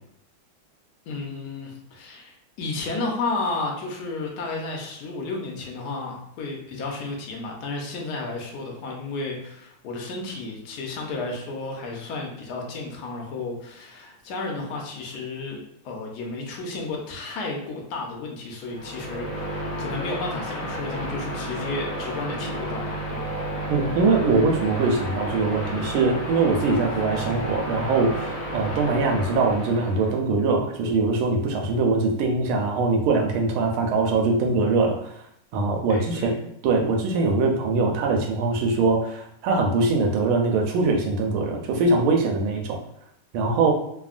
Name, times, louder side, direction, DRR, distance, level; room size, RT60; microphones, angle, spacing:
voice 1, 1.1-15.6 15.8-23.3 35.9-36.3, left 3 dB, 70° left, 0 dB, 1.0 m, -32 dB
sound 1, 18.6-30.2, right 1 dB, 40° left, 0.8 m, -32 dB
voice 2, 23.7-35.1 35.5-36.3 36.6-42.8 43.3-43.7, right 3 dB, 90° right, 2 dB, 1.5 m, -22 dB
3.4 x 2.1 x 2.4 m, 0.74 s
omnidirectional pair, 2.3 m